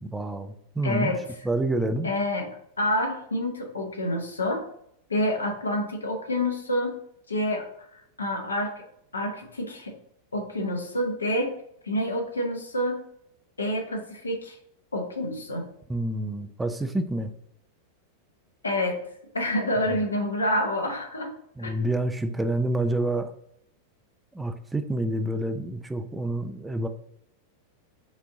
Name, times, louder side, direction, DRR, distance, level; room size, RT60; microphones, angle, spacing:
voice 1, 0.0-1.1 1.4-2.1 15.9-17.3 21.6-23.3 24.3-26.9, right 1 dB, 10° right, 9 dB, 0.4 m, -28 dB
voice 2, 0.8-1.5 2.0-2.5 2.8-4.7 5.1-7.0 7.3-7.6 7.9-8.8 9.1-9.9 10.3-11.5 11.8-13.0 13.6-14.6 14.9-15.6 18.6-19.0 19.3-21.3 21.6-21.9, left 1 dB, 75° left, 3 dB, 0.8 m, -28 dB
5.1 x 2.6 x 3.7 m, 0.73 s
figure-of-eight pair, 90°, 0 cm